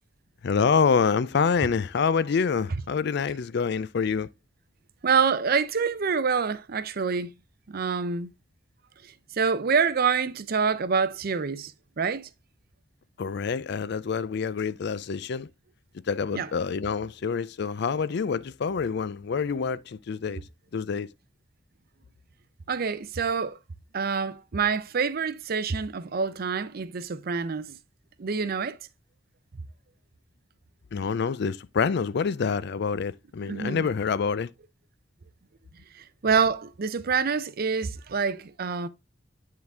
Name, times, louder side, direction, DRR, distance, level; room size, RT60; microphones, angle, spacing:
voice 1, 0.4-4.3 13.2-15.5 16.1-20.4 20.7-21.1 30.9-34.5, left 5 dB, 60° left, 0.4 m, -26 dB
voice 2, 5.0-7.3 7.7-8.3 9.4-11.7 12.0-12.3 16.3-16.5 22.7-23.6 23.9-27.8 28.2-28.8 33.5-33.9 36.2-38.9, right 5 dB, 50° right, 0.5 m, -26 dB
9.6 x 3.9 x 3.5 m
head